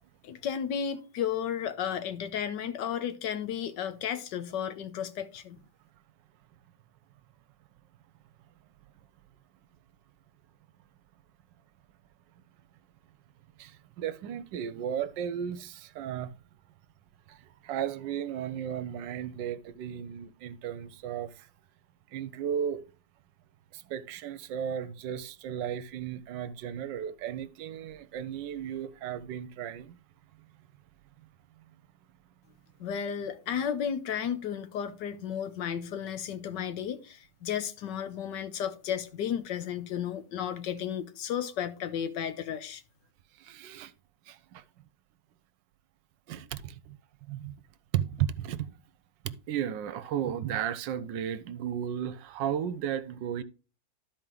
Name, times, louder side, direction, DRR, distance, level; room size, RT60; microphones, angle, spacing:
voice 1, 0.2-5.6 32.8-42.8, left 8 dB, 70° left, 1.4 m, -33 dB
voice 2, 13.6-16.3 17.3-21.5 22.1-22.8 23.7-30.0 43.4-43.9 44.3-44.6 46.3-47.0 47.3-47.5 47.9-48.7 49.2-53.4, right 9 dB, 80° right, 1.3 m, -34 dB
12.5 x 4.6 x 3.8 m
omnidirectional pair, 2.0 m